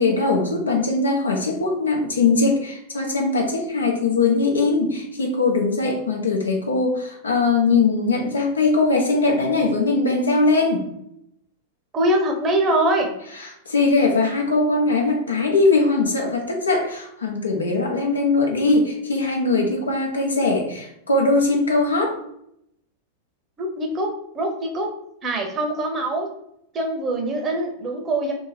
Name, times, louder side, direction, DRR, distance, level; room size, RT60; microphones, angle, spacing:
voice 1, 0.0-10.8 13.4-22.2, left 3 dB, 75° left, 1 dB, 0.8 m, -21 dB
voice 2, 11.9-13.1 23.6-24.9 25.2-26.3 26.7-28.3, right 1 dB, 25° right, 2 dB, 0.8 m, -23 dB
2.8 x 2.7 x 4.1 m, 0.75 s
figure-of-eight pair, 90°, 0 cm